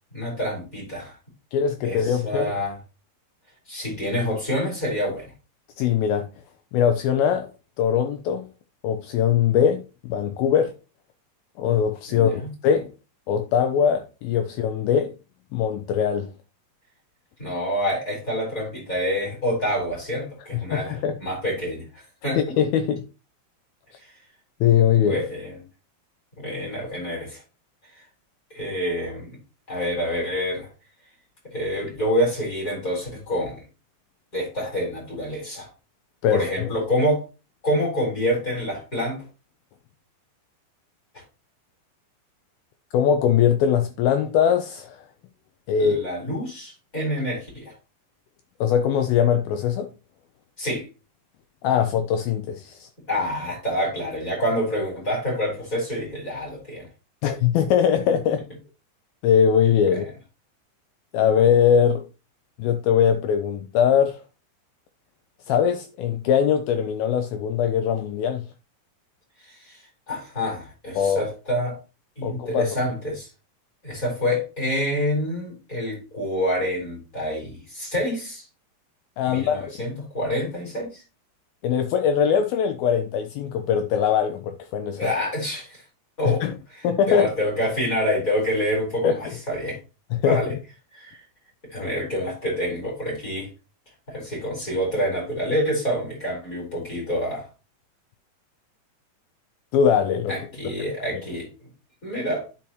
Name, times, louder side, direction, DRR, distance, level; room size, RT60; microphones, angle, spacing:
voice 1, 0.1-1.2 1.8-2.7 3.7-5.3 12.1-12.5 17.4-22.6 25.0-25.6 26.4-27.4 28.5-29.3 29.7-30.7 31.5-33.6 34.3-35.7 36.3-37.2 37.6-39.2 41.1-41.2 45.8-47.7 50.6-50.9 53.1-56.9 69.5-69.8 70.1-71.8 72.2-73.3 73.8-78.4 79.3-81.0 85.0-85.8 86.2-89.8 90.2-90.5 90.9-91.2 91.7-93.5 94.1-97.5 100.3-101.5 102.0-102.5, equal, 20° left, 4.5 m, -27 dB
voice 2, 1.5-2.5 5.8-6.3 6.7-7.5 7.8-8.5 8.8-10.7 11.6-12.3 12.6-12.9 13.3-15.1 15.5-16.3 20.7-21.1 22.6-23.0 24.6-25.2 36.2-36.7 42.9-45.0 45.7-46.0 48.6-49.9 51.6-52.9 57.2-58.5 59.2-60.1 61.1-62.0 62.6-64.2 65.5-68.4 71.0-71.2 72.2-72.8 79.2-79.7 81.6-85.1 86.2-86.5 86.8-87.3 89.0-89.4 90.1-90.4 99.7-100.4, left 8 dB, 80° left, 2.1 m, -21 dB
10.5 x 5.5 x 3.0 m
omnidirectional pair, 4.9 m